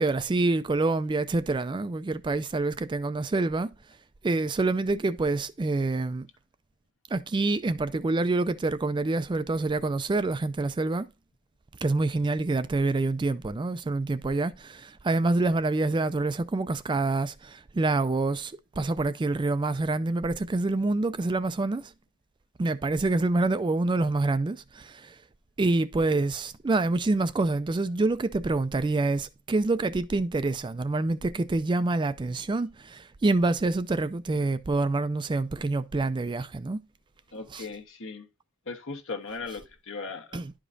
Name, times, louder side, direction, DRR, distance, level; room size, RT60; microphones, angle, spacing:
voice 1, 0.0-3.7 4.2-6.3 7.1-11.1 11.8-21.9 22.6-25.2 25.6-36.8 37.5-37.7 40.3-40.5, right 2 dB, 20° right, 0.3 m, -27 dB
voice 2, 37.3-38.3 38.7-40.4, left 4 dB, 60° left, 1.3 m, -38 dB
11.0 x 5.0 x 2.6 m
head